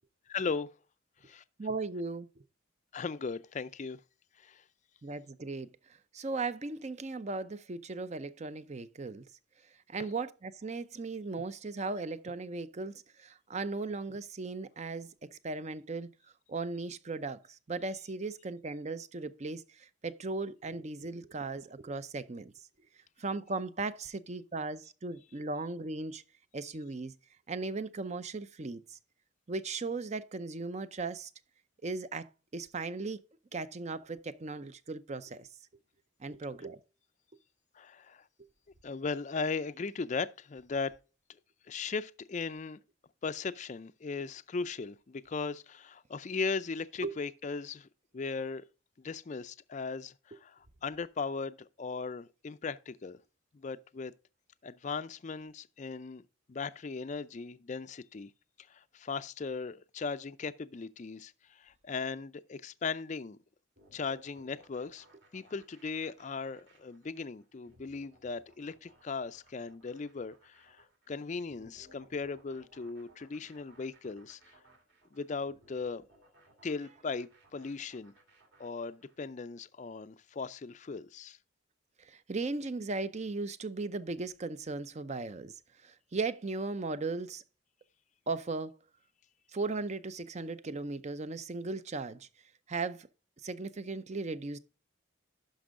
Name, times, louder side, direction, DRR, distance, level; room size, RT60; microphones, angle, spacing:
voice 1, 0.3-0.7 1.2-1.4 2.9-4.0 4.4-4.6 37.8-38.2 38.8-40.9 41.7-42.8 43.2-47.9 48.1-48.6 49.0-53.2 53.5-54.1 54.6-56.2 56.5-58.3 58.7-63.4 63.9-65.1 65.3-74.4 75.1-76.0 76.6-78.1 78.6-81.4, left 4 dB, 35° left, 0.4 m, -38 dB
voice 2, 1.6-2.3 5.0-5.7 6.1-9.2 9.9-16.1 16.5-22.5 23.2-26.2 26.5-27.1 27.5-29.0 29.5-31.3 31.8-33.2 33.5-35.5 36.2-36.8 38.4-38.5 47.0-47.2 82.0-85.5 85.8-87.4 88.3-88.7 89.5-92.3 92.7-93.1 93.4-94.6, right 3 dB, 35° right, 0.5 m, -37 dB
sound 1, 63.8-79.2, right 1 dB, 55° right, 2.5 m, -63 dB
11.5 x 5.3 x 3.7 m
head